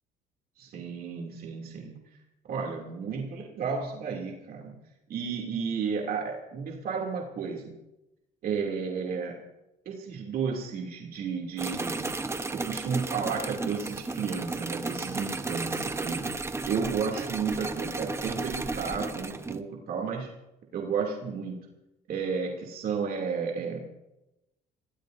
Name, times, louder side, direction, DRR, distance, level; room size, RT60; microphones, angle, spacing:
voice 1, 0.6-2.0 2.5-4.7 5.1-7.7 8.4-9.4 9.8-12.1 12.5-16.3 16.7-20.3 20.7-21.6 22.1-23.9, right 6 dB, 60° right, -1 dB, 2.7 m, -32 dB
sound 1, 11.6-19.6, right 3 dB, 15° right, 1.0 m, -34 dB
27.0 x 17.5 x 2.7 m, 0.94 s
cardioid pair, 110°, 17 cm